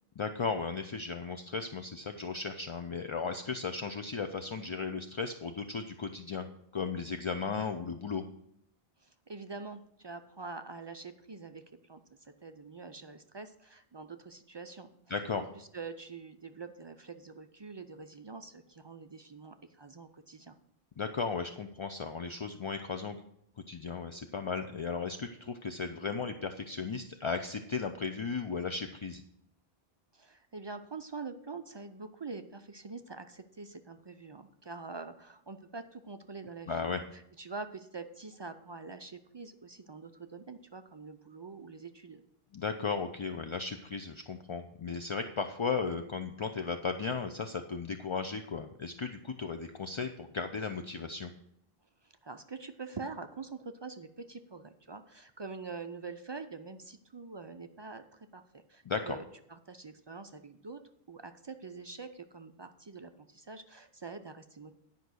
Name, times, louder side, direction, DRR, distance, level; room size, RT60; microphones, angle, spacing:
voice 1, 0.2-6.5 6.7-8.2 15.1-15.4 21.0-23.2 23.7-29.2 36.7-37.0 42.5-51.3 58.9-59.2, left 5 dB, 45° left, 7 dB, 0.4 m, -35 dB
voice 2, 9.0-20.6 30.1-42.2 52.0-60.8 61.1-64.8, right 4 dB, 50° right, 8 dB, 0.3 m, -45 dB
10.5 x 5.3 x 6.2 m, 0.75 s
omnidirectional pair, 1.1 m